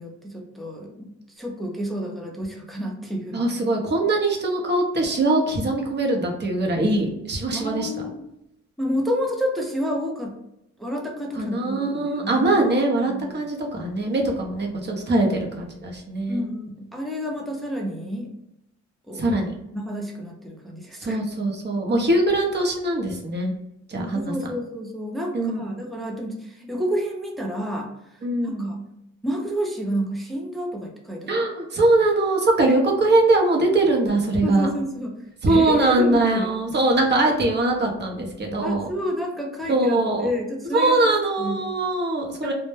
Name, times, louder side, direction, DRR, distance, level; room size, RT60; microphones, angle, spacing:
voice 1, 0.0-3.4 7.5-8.2 8.8-10.3 10.8-12.5 13.1-13.5 15.1-15.3 16.3-18.3 19.1-19.2 19.7-21.2 24.1-28.8 29.2-31.3 32.7-32.8 34.4-35.1 35.5-36.5 38.6-41.1 41.4-41.6 42.4-42.5, equal, ahead, -1 dB, 0.5 m, -29 dB
voice 2, 3.3-7.9 11.4-16.4 19.1-19.5 21.0-23.5 23.9-24.5 25.3-25.9 28.2-28.8 31.3-34.7 35.4-38.9 39.7-40.3 40.7-42.5, right 2 dB, 35° right, 1 dB, 0.7 m, -22 dB
2.1 x 2.1 x 3.1 m, 0.84 s
cardioid pair, 90°, 30 cm